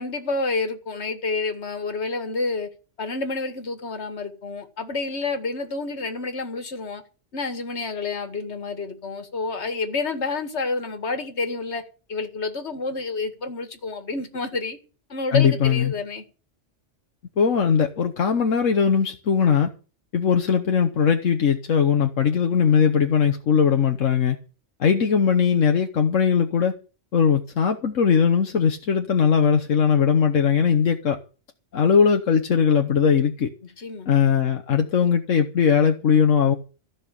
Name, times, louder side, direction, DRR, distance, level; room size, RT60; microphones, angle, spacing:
voice 1, 0.0-2.7 3.0-7.0 7.3-11.8 12.1-14.8 15.1-16.2 33.8-34.1, left 3 dB, 60° left, 2.2 m, -29 dB
voice 2, 15.3-15.9 17.4-19.7 20.1-24.4 24.8-26.7 27.1-31.2 31.7-33.5 34.1-36.5, left 7 dB, 85° left, 1.5 m, -20 dB
15.0 x 6.2 x 9.9 m
omnidirectional pair, 1.3 m